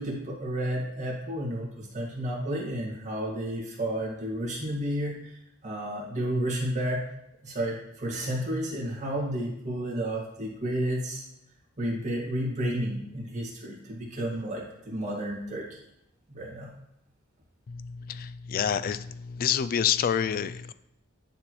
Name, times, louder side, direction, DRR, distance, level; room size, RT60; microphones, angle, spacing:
voice 1, 0.0-5.2 5.6-7.0 7.4-11.2 11.8-15.7 16.3-16.7, right 1 dB, 35° right, -2 dB, 1.9 m, -31 dB
voice 2, 17.7-20.7, left 8 dB, 45° left, 14 dB, 0.3 m, -28 dB
10.5 x 4.3 x 3.1 m, 0.81 s
head